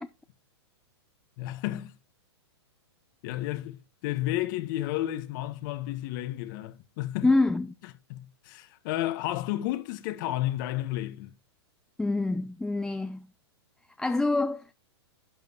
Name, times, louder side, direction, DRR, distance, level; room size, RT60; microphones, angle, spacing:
voice 1, 1.4-1.9 3.2-3.8 4.0-7.3 8.1-11.3, left 15 dB, 45° left, 1.1 m, -32 dB
voice 2, 7.2-7.7 12.0-13.3 14.0-14.7, left 2 dB, 5° left, 0.4 m, -26 dB
11.5 x 8.9 x 2.9 m
hypercardioid pair, 115°, 14 cm